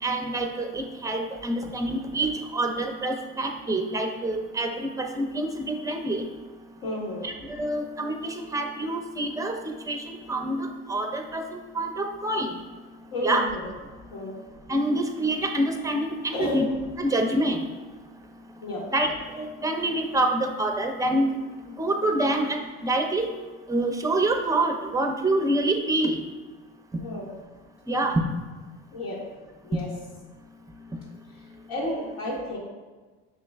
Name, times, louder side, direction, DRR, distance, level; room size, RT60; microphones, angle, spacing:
voice 1, 0.0-6.2 7.2-9.5 9.8-12.5 13.2-13.5 14.7-16.7 17.0-17.6 18.9-21.3 21.8-23.2 23.7-26.2 27.9-28.2, right 1 dB, 10° right, 3 dB, 0.6 m, -26 dB
voice 2, 6.8-7.2 13.1-13.7 14.1-14.4 16.3-16.6 18.6-18.8 27.0-27.3 28.9-29.2 29.6-29.9 31.7-32.6, left 1 dB, 70° left, -7 dB, 1.1 m, -31 dB
6.7 x 3.0 x 2.3 m, 1.3 s
supercardioid pair, 75°, 33 cm